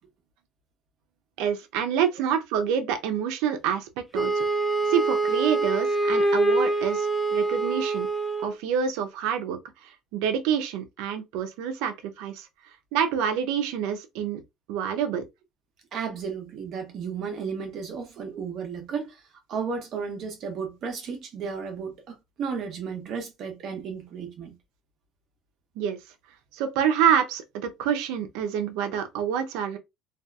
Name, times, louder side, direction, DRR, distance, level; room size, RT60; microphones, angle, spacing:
voice 1, 1.4-4.4 4.9-8.1 8.4-9.6 9.8-12.5 12.9-14.4 14.7-15.2 25.8-26.0 26.5-29.8, right 8 dB, 85° right, 0.6 m, -27 dB
Wind instrument woodwind instrument, 4.1-8.6, right 3 dB, ahead, 0.7 m, -25 dB
voice 2, 15.9-19.2 19.5-24.5, right 6 dB, 45° right, 0.8 m, -33 dB
2.7 x 2.4 x 2.3 m
cardioid pair, 165°, 0 cm